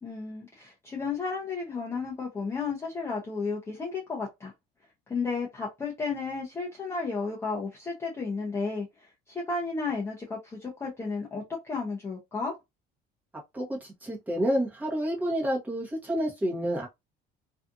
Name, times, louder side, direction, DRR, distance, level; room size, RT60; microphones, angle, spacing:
voice 1, 0.0-4.5 5.1-8.9 9.3-12.5, left 4 dB, 15° left, 0.6 m, -33 dB
voice 2, 13.5-16.9, equal, 10° right, 0.9 m, -29 dB
2.6 x 2.4 x 2.4 m
cardioid pair, 175°, 18 cm